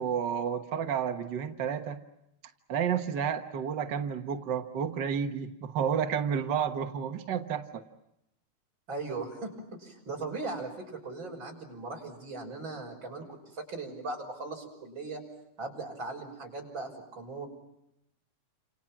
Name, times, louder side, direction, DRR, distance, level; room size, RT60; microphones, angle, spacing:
voice 1, 0.0-2.0 2.7-7.8, right 7 dB, 70° right, 5 dB, 1.0 m, -31 dB
voice 2, 8.9-15.2 15.6-17.5, right 3 dB, 35° right, 1 dB, 6.3 m, -39 dB
30.0 x 28.0 x 6.0 m, 0.83 s
omnidirectional pair, 3.9 m